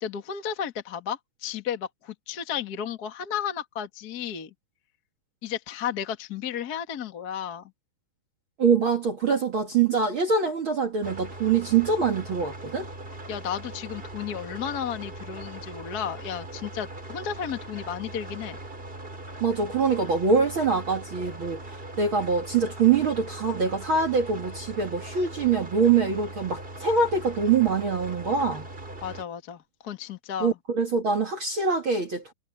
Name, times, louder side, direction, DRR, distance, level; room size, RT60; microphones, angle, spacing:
voice 1, 0.0-4.5 5.4-7.7 13.3-18.6 29.0-30.6, left 8 dB, 75° left, 0.8 m, -33 dB
voice 2, 8.6-12.9 19.4-28.7 30.4-32.3, right 5 dB, 50° right, 1.5 m, -24 dB
sound 1, 11.0-29.2, right 2 dB, 15° right, 2.7 m, -40 dB
omnidirectional pair, 5.2 m